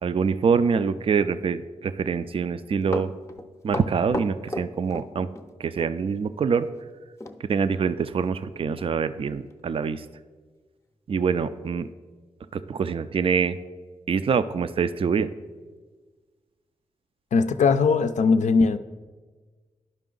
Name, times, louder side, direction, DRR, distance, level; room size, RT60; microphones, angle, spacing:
voice 1, 0.0-3.1 3.6-5.3 5.6-6.7 7.4-10.1 11.1-11.9 12.5-13.6 14.1-15.3, right 6 dB, 45° right, 13 dB, 0.4 m, -25 dB
Run, 2.6-5.5 5.8-5.9 7.2-7.4 7.7-7.8 8.4-8.5 8.8-9.0 9.5-9.6, left 1 dB, 20° left, 0.6 m, -33 dB
voice 2, 17.3-18.8, left 4 dB, 70° left, 10 dB, 0.4 m, -20 dB
10.5 x 5.0 x 3.8 m, 1.4 s
cardioid pair, 50°, 13 cm